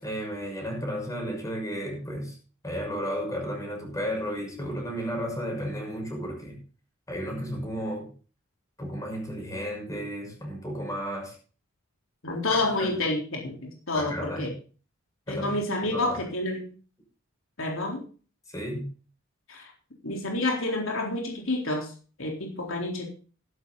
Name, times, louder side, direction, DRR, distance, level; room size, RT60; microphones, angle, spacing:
voice 1, 0.0-2.4 2.6-6.6 7.1-8.1 8.8-11.3 12.5-13.0 13.9-14.5 15.3-15.5 15.8-16.2 18.5-18.9, equal, 15° left, 0 dB, 6.4 m, -33 dB
voice 2, 12.2-14.5 15.3-16.7 17.6-18.0 19.5-19.7 20.0-21.9 22.2-23.1, left 2 dB, 65° left, 1 dB, 4.0 m, -29 dB
14.5 x 12.0 x 4.0 m, 0.38 s
head